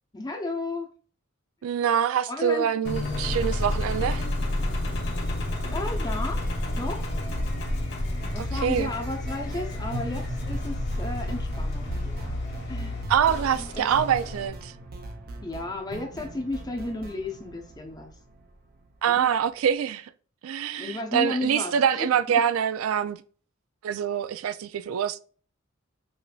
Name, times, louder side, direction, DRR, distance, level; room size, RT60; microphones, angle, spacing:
voice 1, 0.1-0.9 2.3-2.7 5.7-6.4 6.7-7.2 8.3-13.0 13.8-13.9 15.4-18.1 19.1-19.3 20.8-22.1, left 2 dB, 20° left, 0.7 m, -33 dB
voice 2, 1.6-4.3 8.4-8.9 13.1-14.7 19.0-20.1 20.4-23.2 23.8-25.2, right 8 dB, 85° right, 0.3 m, -25 dB
Engine, 2.8-14.5, left 1 dB, 55° left, 0.9 m, -30 dB
sound 1, 8.2-19.1, right 1 dB, 45° right, 0.7 m, -41 dB
4.9 x 2.6 x 2.3 m
head